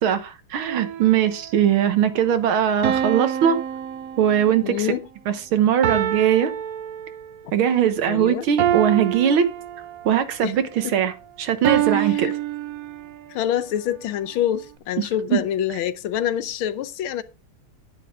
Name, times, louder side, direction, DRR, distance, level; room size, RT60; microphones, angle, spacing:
voice 1, 0.0-3.6 4.2-4.9 5.3-6.5 7.5-9.5 10.1-12.3 15.3-15.4, right 9 dB, 70° right, 1.9 m, -20 dB
sound 1, 0.6-1.5 2.8-4.7 5.8-7.5 8.6-10.2 11.6-13.3, right 10 dB, 90° right, 0.7 m, -26 dB
voice 2, 4.6-5.1 8.1-8.5 10.4-10.5 10.8-10.9 11.9-12.3 13.3-17.2, left 10 dB, 75° left, 1.5 m, -26 dB
10.0 x 10.0 x 3.6 m
omnidirectional pair, 2.4 m